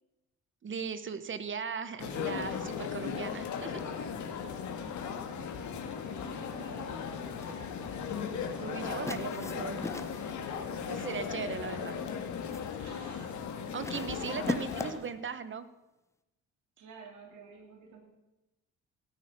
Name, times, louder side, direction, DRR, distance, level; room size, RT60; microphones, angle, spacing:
voice 1, 0.6-3.8 8.6-10.1 10.9-12.0 13.7-15.7, right 6 dB, 40° right, 13 dB, 1.1 m, -38 dB
sound 1, 2.0-14.9, left 6 dB, 75° left, 2.0 m, -37 dB
voice 2, 4.5-4.9 5.8-7.1 12.8-13.5 16.8-18.0, right 5 dB, 75° right, 1 dB, 3.3 m, -53 dB
sound 2, 7.3-7.6 9.1-10.4 11.4-11.8 12.2-12.7 13.8-15.1, left 2 dB, 10° left, 0.9 m, -39 dB
17.0 x 9.2 x 6.1 m, 0.98 s
cardioid pair, 90°, 30 cm